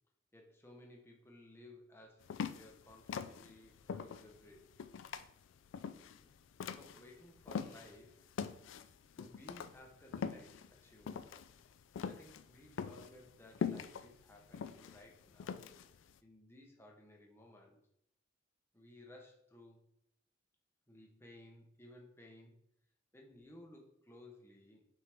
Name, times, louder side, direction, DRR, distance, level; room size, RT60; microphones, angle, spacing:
voice 1, 0.3-4.7 5.8-6.3 6.6-8.3 9.2-11.3 12.0-15.7 16.2-17.8 18.7-19.8 20.9-22.6 23.1-24.9, left 1 dB, 10° left, 1 dB, 0.8 m, -58 dB
sound 1, 2.3-8.0 8.4-16.1, left 6 dB, 80° left, 0.3 m, -42 dB
5.8 x 4.7 x 3.5 m, 0.75 s
head